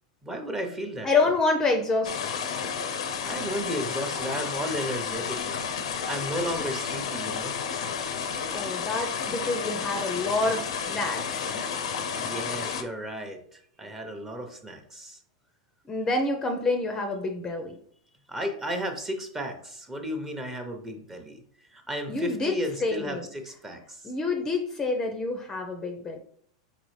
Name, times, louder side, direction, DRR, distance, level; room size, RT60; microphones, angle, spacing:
voice 1, 0.2-1.1 3.2-5.7 6.1-7.5 12.2-15.2 18.3-21.4 21.7-24.1, equal, 15° right, 4 dB, 0.8 m, -34 dB
voice 2, 1.0-2.3 2.6-2.9 8.5-11.6 15.9-17.8 22.1-22.5 22.8-23.3 24.0-26.2, left 3 dB, 20° left, 4 dB, 0.6 m, -27 dB
sound 1, 2.0-12.8, left 6 dB, 80° left, 0.6 m, -31 dB
4.2 x 3.9 x 3.2 m, 0.63 s
hypercardioid pair, 120°, 3 cm